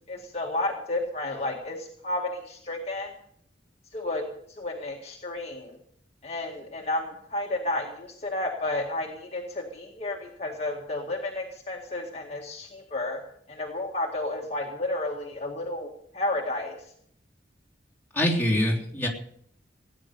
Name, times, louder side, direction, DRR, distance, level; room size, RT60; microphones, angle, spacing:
voice 1, 0.1-3.1 3.9-4.3 4.6-5.8 6.2-13.2 13.5-16.8, left 2 dB, 35° left, -1 dB, 1.9 m, -32 dB
voice 2, 18.1-19.1, left 1 dB, 10° left, -3 dB, 3.3 m, -24 dB
17.5 x 10.0 x 6.7 m, 0.67 s
head